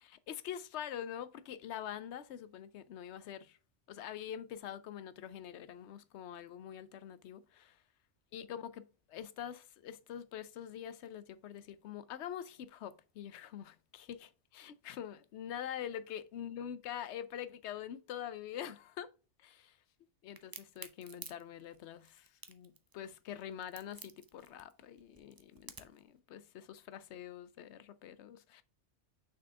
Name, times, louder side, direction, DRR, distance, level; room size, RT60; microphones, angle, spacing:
voice 1, 0.3-3.6 3.9-7.8 8.3-19.1 19.4-19.8 20.2-28.6, left 10 dB, 70° left, 0.8 m, -45 dB
Crack, 20.4-26.0, right 4 dB, 35° right, 0.3 m, -51 dB
6.2 x 4.5 x 3.5 m
omnidirectional pair, 1.2 m